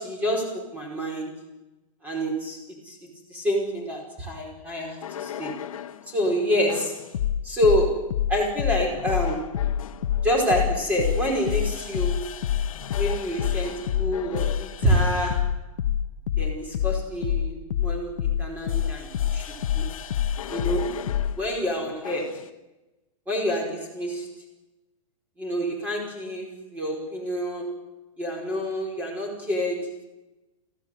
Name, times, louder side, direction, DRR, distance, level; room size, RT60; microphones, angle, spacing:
voice 1, 0.0-1.3 2.0-3.0 3.3-5.6 6.1-6.9 7.4-8.0 8.3-9.5 10.2-12.2 12.9-15.4 16.4-19.4 19.7-19.9 20.5-20.9 21.4-22.3 23.3-24.3 25.4-27.7 28.2-30.0, equal, 10° right, 0 dB, 4.9 m, -27 dB
sound 1, 5.0-6.0 6.7-21.4 22.0-22.4, left 9 dB, 70° left, 1.4 m, -27 dB
22.0 x 16.0 x 9.3 m, 1.1 s
hypercardioid pair, 170°, 18 cm